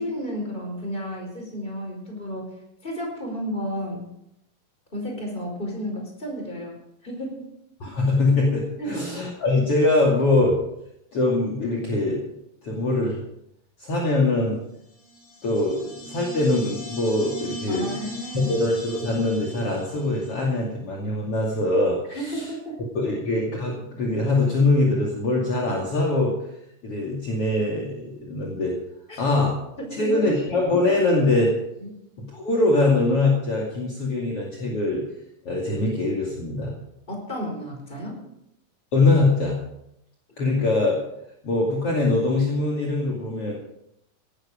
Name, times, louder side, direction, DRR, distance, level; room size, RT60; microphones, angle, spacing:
voice 1, 0.0-2.5 2.8-4.0 4.9-7.5 8.8-9.1 17.7-18.6 22.1-23.1 29.1-29.2 29.8-30.3 31.8-31.9 37.1-38.2, equal, 15° left, 1 dB, 4.8 m, -32 dB
voice 2, 7.8-10.6 11.1-12.2 12.6-13.2 13.8-14.6 15.4-17.9 18.3-22.4 22.9-26.3 26.8-28.7 29.2-29.5 29.9-31.5 32.2-35.0 35.4-36.8 38.9-39.6 40.4-41.0 41.4-43.5, left 2 dB, 45° left, -2 dB, 3.2 m, -23 dB
sound 1, 14.9-20.3, right 1 dB, 65° left, 6.3 m, -39 dB
17.5 x 13.0 x 5.1 m, 0.80 s
omnidirectional pair, 4.0 m